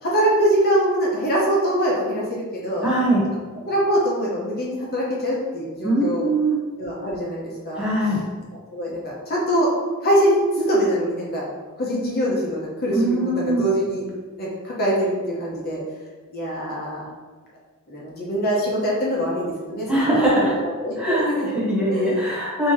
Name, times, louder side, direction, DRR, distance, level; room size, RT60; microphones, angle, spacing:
voice 1, 0.0-2.9 3.7-6.3 6.8-8.2 8.7-9.7 10.0-11.5 11.8-14.0 14.4-15.8 16.3-17.1 17.9-20.2 20.6-21.5 21.9-22.3, equal, 45° left, -4 dB, 0.8 m, -23 dB
voice 2, 2.8-3.2 5.8-6.5 7.8-8.2 12.9-13.6 19.9-20.5 21.0-21.2 21.7-22.7, right 1 dB, 5° right, -8 dB, 1.3 m, -21 dB
3.5 x 2.8 x 4.4 m, 1.3 s
head